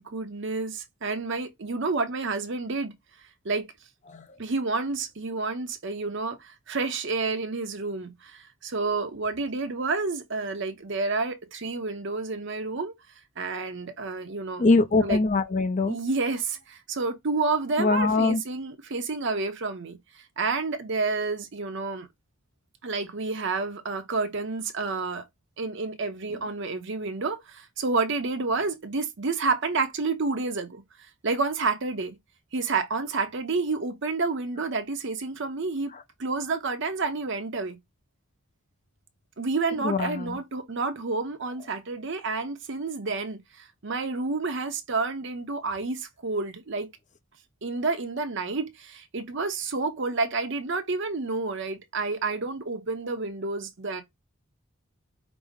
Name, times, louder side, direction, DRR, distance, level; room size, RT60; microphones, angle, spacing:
voice 1, 0.0-2.9 3.4-3.7 4.4-12.9 13.4-14.7 15.0-15.2 15.9-22.1 22.8-25.3 25.6-30.8 31.2-32.2 32.5-35.9 36.2-37.8 39.4-46.9 47.6-54.0, right 3 dB, 60° right, 0.8 m, -29 dB
voice 2, 14.6-16.0 17.8-18.4 39.8-40.4, left 3 dB, 35° left, 0.5 m, -22 dB
5.1 x 2.1 x 3.5 m
head